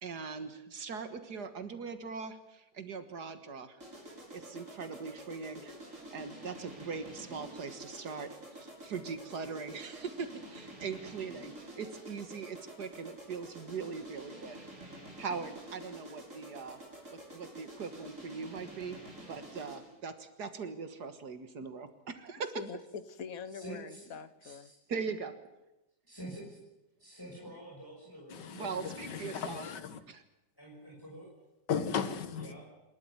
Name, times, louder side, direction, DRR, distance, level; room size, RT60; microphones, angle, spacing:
voice 1, 0.0-3.8 4.3-14.7 15.2-16.8 17.1-19.0 19.3-22.5 24.9-25.3 28.5-29.7 30.1-30.2, right 5 dB, 70° right, 2.1 m, -41 dB
sound 1, 3.8-20.0, right 1 dB, 45° right, 6.6 m, -49 dB
voice 2, 22.5-24.7, left 6 dB, 60° left, 1.5 m, -44 dB
voice 3, 23.5-24.0 24.4-24.8 26.0-26.6 27.0-28.4 30.6-31.3 32.4-32.7, right 1 dB, 10° left, 5.8 m, -47 dB
voice 4, 28.3-30.0 31.7-32.5, left 7 dB, 85° left, 2.0 m, -36 dB
27.0 x 13.0 x 9.6 m
omnidirectional pair, 1.8 m